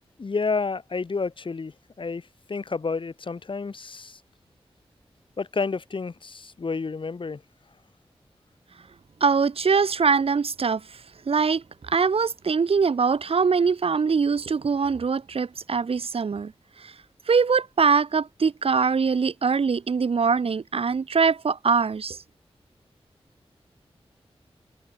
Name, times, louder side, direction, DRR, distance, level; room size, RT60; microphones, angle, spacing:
voice 1, 0.2-1.7 2.0-2.2 2.5-4.2 5.4-7.4, left 4 dB, 55° left, 3.6 m, -30 dB
voice 2, 9.2-10.8 11.3-16.5 17.3-22.2, right 5 dB, 65° right, 1.7 m, -22 dB
wide cardioid pair, 110°, 10 cm